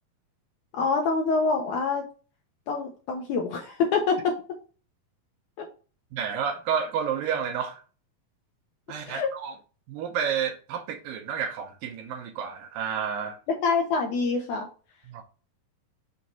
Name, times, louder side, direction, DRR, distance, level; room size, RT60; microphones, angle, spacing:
voice 1, 0.7-2.1 2.7-4.4 5.6-5.7 9.0-9.3 13.6-14.7, left 4 dB, 75° left, 2.0 m, -26 dB
voice 2, 6.1-7.8 8.9-9.5 9.9-13.4 15.1-15.2, right 7 dB, 80° right, 2.4 m, -30 dB
6.2 x 2.9 x 5.2 m
omnidirectional pair, 4.1 m